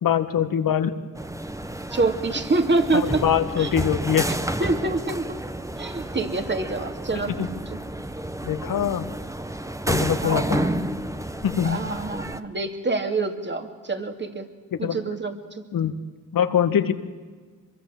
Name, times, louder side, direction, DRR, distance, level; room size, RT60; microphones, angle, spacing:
voice 1, 0.0-1.0 3.2-4.3 7.4-7.5 8.4-9.1 9.9-10.6 11.4-11.8 14.8-15.0 15.7-16.0 16.3-16.9, left 9 dB, 80° left, 10 dB, 1.7 m, -23 dB
sound 1, 1.2-12.4, right 1 dB, 10° right, 1.2 m, -30 dB
voice 2, 1.9-3.2 3.6-3.8 4.2-5.4 5.8-7.8 10.2-10.9 11.6-14.5 14.8-15.6, right 3 dB, 35° right, 6 dB, 2.7 m, -26 dB
25.0 x 23.0 x 7.8 m, 1.5 s
cardioid pair, 80°, 33 cm